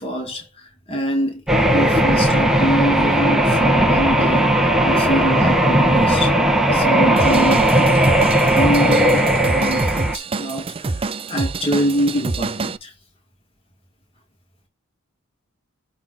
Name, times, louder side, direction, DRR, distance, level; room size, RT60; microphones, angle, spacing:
voice 1, 0.0-1.4 1.7-4.5 4.8-6.4 6.7-12.9, equal, 30° left, 2.8 m, -25 dB
sound 1, 1.5-10.2, right 1 dB, ahead, 1.2 m, -17 dB
Drum kit / Drum, 7.2-12.8, right 3 dB, 25° right, 0.5 m, -27 dB
8.3 x 3.9 x 5.7 m
head